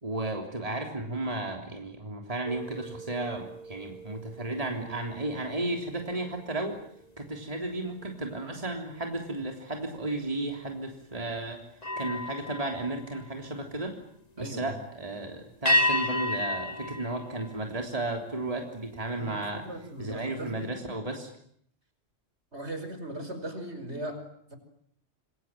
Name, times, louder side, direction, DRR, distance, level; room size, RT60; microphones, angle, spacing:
voice 1, 0.0-6.8 7.2-11.6 12.0-14.0 14.4-19.6 20.0-21.3, right 2 dB, 30° right, 3 dB, 3.5 m, -34 dB
sound 1, 2.5-8.0 8.5-8.8 11.8-13.9 15.7-18.2, left 1 dB, 30° left, 2.0 m, -33 dB
voice 2, 14.4-14.8 19.2-20.7 22.5-24.6, right 1 dB, 60° right, 8 dB, 5.8 m, -38 dB
27.5 x 23.0 x 9.2 m, 0.67 s
omnidirectional pair, 1.3 m